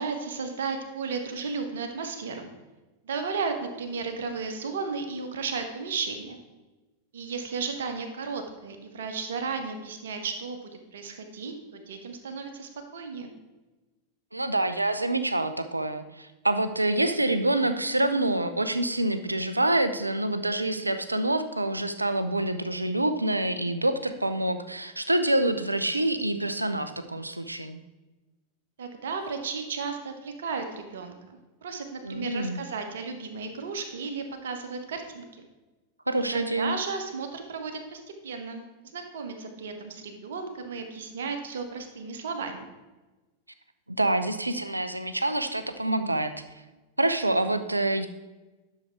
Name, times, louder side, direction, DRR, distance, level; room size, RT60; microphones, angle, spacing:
voice 1, 0.0-2.5 3.0-6.4 7.1-13.3 28.8-35.4 36.2-42.7, right 5 dB, 60° right, 6 dB, 1.4 m, -34 dB
voice 2, 14.3-27.8 32.0-32.6 36.1-36.7 44.0-46.3 47.0-48.1, right 1 dB, 85° right, 10 dB, 0.6 m, -26 dB
10.5 x 6.8 x 4.5 m, 1.1 s
figure-of-eight pair, 90°, 0 cm